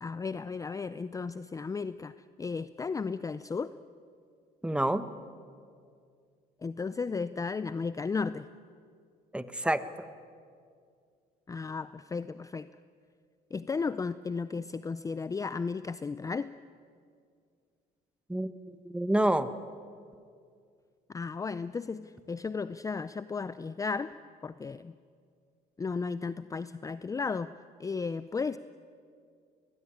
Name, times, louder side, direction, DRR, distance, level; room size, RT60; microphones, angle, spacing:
voice 1, 0.0-2.1 2.4-3.7 6.6-8.5 11.5-12.7 13.5-16.5 21.1-24.1 24.4-24.9 25.8-27.5 27.8-28.6, left 4 dB, 20° left, 14 dB, 0.5 m, -34 dB
voice 2, 4.6-5.0 9.3-9.8 18.3-19.5, right 1 dB, 5° right, 12 dB, 1.2 m, -28 dB
20.5 x 20.0 x 10.0 m, 2.2 s
cardioid pair, 110°, 17 cm